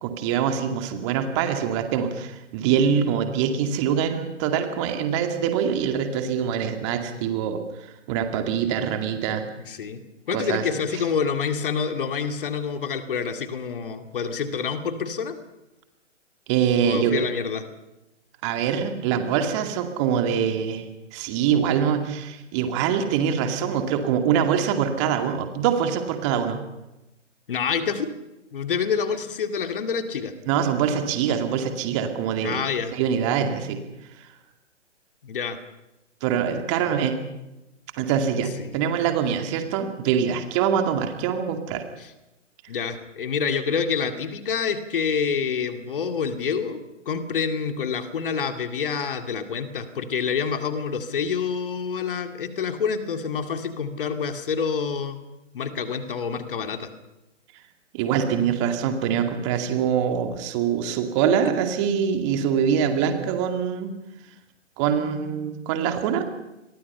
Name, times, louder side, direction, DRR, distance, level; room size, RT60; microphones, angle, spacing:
voice 1, 0.0-9.4 10.3-10.6 16.5-17.2 18.4-20.9 21.1-26.6 30.5-32.6 32.9-33.8 36.2-37.2 38.0-41.8 57.9-63.9 64.8-66.2, right 8 dB, 25° right, 6 dB, 2.3 m, -24 dB
voice 2, 9.7-10.0 10.3-15.4 16.8-17.6 27.5-28.1 28.5-30.3 32.4-32.9 35.2-35.6 38.6-38.7 42.0-42.1 42.7-55.2 55.5-56.9, left 6 dB, 45° left, 7 dB, 2.4 m, -27 dB
29.5 x 22.5 x 5.7 m, 0.96 s
figure-of-eight pair, 130°, 37 cm